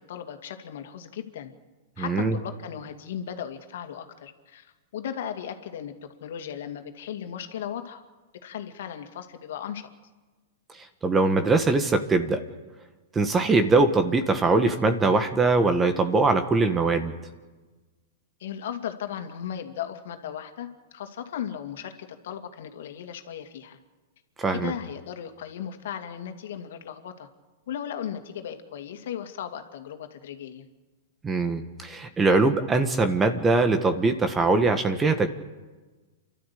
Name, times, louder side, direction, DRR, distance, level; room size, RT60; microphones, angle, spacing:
voice 1, 0.1-1.5 2.0-8.0 8.4-9.9 18.4-23.8 24.5-27.3 27.7-30.7, left 9 dB, 65° left, 6 dB, 2.4 m, -36 dB
voice 2, 2.0-2.4 11.0-12.4 13.1-17.1 24.4-24.7 31.2-35.3, right 3 dB, 15° right, 8 dB, 1.6 m, -22 dB
29.0 x 12.5 x 8.6 m, 1.3 s
hypercardioid pair, 115°, 0 cm